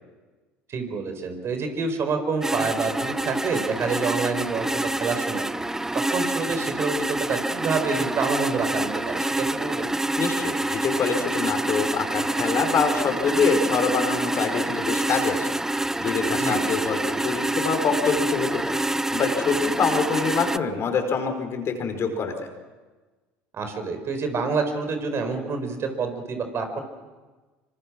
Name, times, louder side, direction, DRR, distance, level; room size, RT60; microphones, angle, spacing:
voice 1, 0.7-5.4 5.9-9.9 16.3-16.6 23.5-26.8, right 4 dB, 45° right, 7 dB, 4.8 m, -27 dB
sound 1, 2.4-20.6, right 1 dB, 5° right, 0.6 m, -27 dB
voice 2, 10.2-15.5 16.0-18.8 19.1-22.5, left 5 dB, 45° left, 5 dB, 4.8 m, -25 dB
25.0 x 25.0 x 6.3 m, 1.3 s
hypercardioid pair, 70°, 6 cm